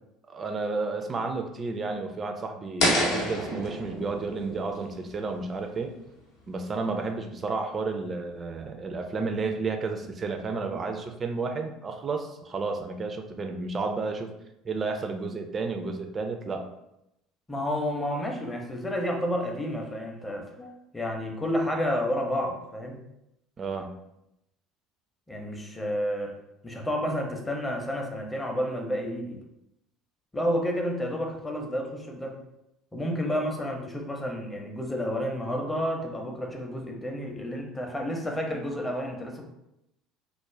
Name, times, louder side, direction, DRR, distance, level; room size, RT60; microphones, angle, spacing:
voice 1, 0.3-5.9 6.5-14.3 14.6-16.7 23.6-23.9, right 4 dB, 30° right, 5 dB, 0.3 m, -31 dB
sound 1, 2.8-5.8, left 1 dB, 65° left, 0.6 m, -29 dB
voice 2, 17.5-23.0 25.3-26.3 26.6-29.4 30.3-32.4 32.9-39.4, equal, 15° left, 1 dB, 0.6 m, -30 dB
2.4 x 2.0 x 3.1 m, 0.85 s
figure-of-eight pair, 60°, 0 cm